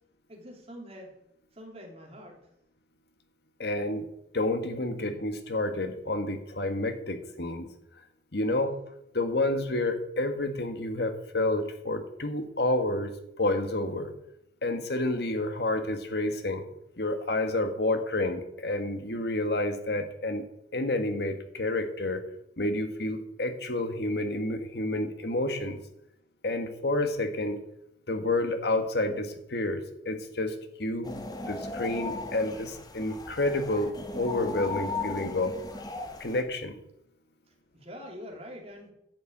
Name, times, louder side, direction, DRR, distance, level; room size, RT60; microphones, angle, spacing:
voice 1, 0.3-1.1 1.5-2.4 37.5-38.9, equal, 35° right, 0 dB, 3.3 m, -45 dB
voice 2, 3.6-4.1 4.3-7.7 8.3-8.8 9.1-13.1 13.4-14.1 14.6-16.7 17.0-20.4 20.7-22.2 22.6-25.8 26.4-27.6 28.1-31.1 31.4-35.6 36.2-36.8, left 2 dB, 60° left, 8 dB, 1.6 m, -29 dB
sound 1, 31.0-36.4, left 3 dB, 20° left, 1.4 m, -37 dB
10.5 x 6.8 x 9.1 m, 0.80 s
head